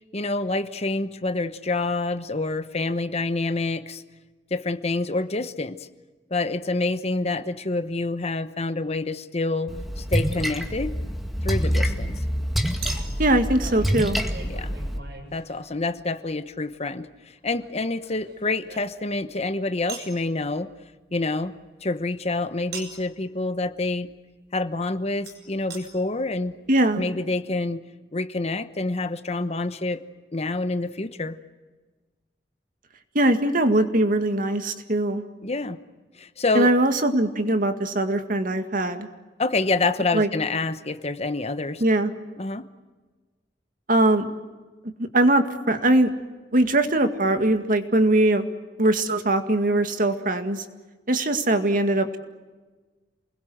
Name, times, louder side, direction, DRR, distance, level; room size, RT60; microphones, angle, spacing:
voice 1, 0.1-4.0 4.5-5.9 6.3-10.9 11.4-12.2 14.4-14.8 15.3-20.7 21.1-21.5 21.8-24.1 24.5-26.5 27.0-27.8 28.1-30.0 30.3-31.4 35.4-35.8 36.2-36.7 39.4-41.8 42.4-42.7, left 2 dB, 35° left, 11 dB, 1.0 m, -27 dB
Splash splatter, 9.7-15.0, equal, ahead, 2.0 m, -26 dB
Chink clink, 10.0-10.2 12.8-16.0 17.6-19.3 19.9-20.2 22.7-23.1 25.3-25.4 25.7-25.8 26.5-26.6 26.7-26.8, right 5 dB, 65° right, 6.7 m, -41 dB
voice 2, 13.2-14.2 26.7-27.0 33.1-35.2 36.5-39.1 40.1-40.3 41.8-42.1 43.9-44.2 45.1-46.1 46.5-48.5 48.8-50.6 51.1-52.2, right 1 dB, 50° right, 7 dB, 2.0 m, -21 dB
28.5 x 21.0 x 7.9 m, 1.3 s
head